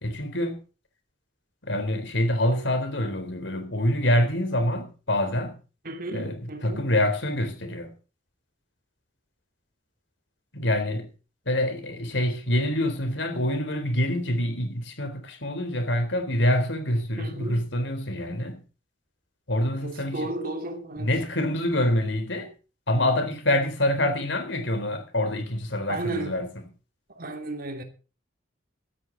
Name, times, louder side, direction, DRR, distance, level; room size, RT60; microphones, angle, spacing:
voice 1, 0.0-0.6 1.6-5.6 6.1-7.9 10.5-11.1 11.5-18.6 19.5-20.3 21.0-22.5 22.9-26.5, left 1 dB, 75° left, 4.0 m, -26 dB
voice 2, 5.8-6.9 17.2-17.7 19.8-21.1 25.9-26.4 27.1-27.8, right 2 dB, 50° right, 3.0 m, -33 dB
16.0 x 13.5 x 4.1 m
head